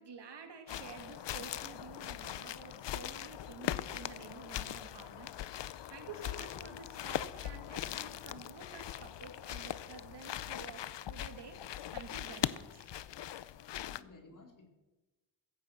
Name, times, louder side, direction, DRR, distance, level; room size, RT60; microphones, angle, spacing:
voice 1, 0.0-11.6 11.9-12.9, right 5 dB, 70° right, 5 dB, 2.3 m, -51 dB
sound 1, 0.7-14.0, left 11 dB, 80° left, 0.7 m, -41 dB
voice 2, 13.8-14.7, left 3 dB, 45° left, 2 dB, 3.5 m, -56 dB
16.5 x 14.5 x 6.0 m, 1.1 s
wide cardioid pair, 145°, 42 cm